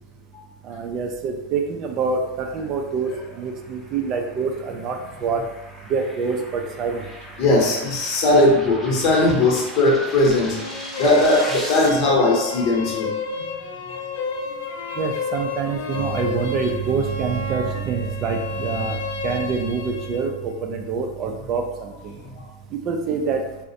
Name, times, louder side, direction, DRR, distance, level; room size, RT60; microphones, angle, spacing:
voice 1, 0.6-5.4 5.9-7.1 15.0-22.2 22.7-23.4, right 5 dB, 45° right, 3 dB, 0.3 m, -26 dB
sound 1, 3.0-11.9, equal, ahead, 0.6 m, -38 dB
voice 2, 7.4-10.6 11.0-13.1, left 2 dB, 50° left, -2 dB, 0.8 m, -18 dB
sound 2, 10.3-20.3, left 4 dB, 80° left, 0.3 m, -31 dB
2.4 x 2.0 x 2.7 m, 0.99 s
hypercardioid pair, 105°, 0 cm